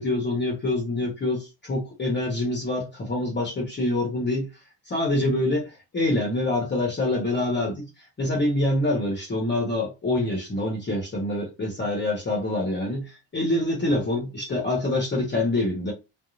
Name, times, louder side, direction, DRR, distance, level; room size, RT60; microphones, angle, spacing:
voice 1, 0.0-4.5 4.9-7.9 8.2-15.9, left 1 dB, 25° left, 0.9 m, -26 dB
2.5 x 2.0 x 3.1 m
cardioid pair, 145°, 44 cm